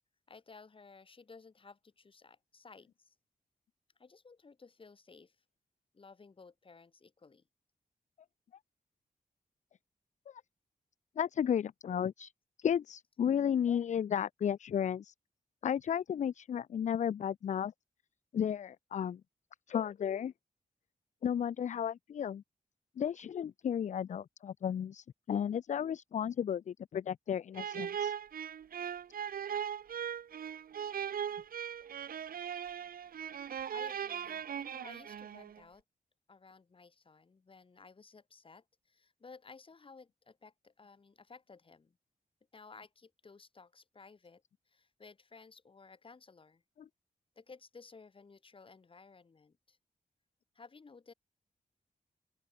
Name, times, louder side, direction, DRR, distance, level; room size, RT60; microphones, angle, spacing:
voice 1, 0.3-3.1 4.0-5.4 5.9-7.4 33.7-35.8 36.3-42.0 42.5-46.6 47.4-49.8 50.5-51.1, left 4 dB, 35° left, 4.1 m, -56 dB
voice 2, 11.2-12.3 12.6-15.1 15.6-17.7 18.3-19.2 19.7-20.3 21.2-22.4 23.0-28.1 46.8-46.9, left 8 dB, 55° left, 0.4 m, -33 dB
sound 1, 27.5-35.6, right 8 dB, 85° right, 1.4 m, -39 dB
open air
wide cardioid pair, 140°, 15 cm